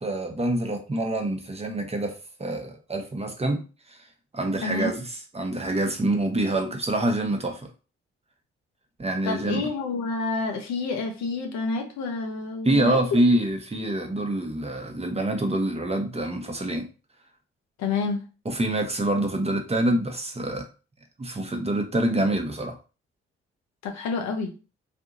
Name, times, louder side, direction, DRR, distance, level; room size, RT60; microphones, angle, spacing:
voice 1, 0.0-3.6 4.3-5.0 5.3-7.6 9.0-9.7 12.6-16.9 18.5-20.7 21.2-22.8, right 1 dB, 20° right, 0.8 m, -26 dB
voice 2, 4.6-5.0 9.3-13.2 17.8-18.3 23.8-24.5, left 4 dB, 70° left, 0.7 m, -29 dB
2.7 x 2.5 x 2.4 m
hypercardioid pair, 45°, 29 cm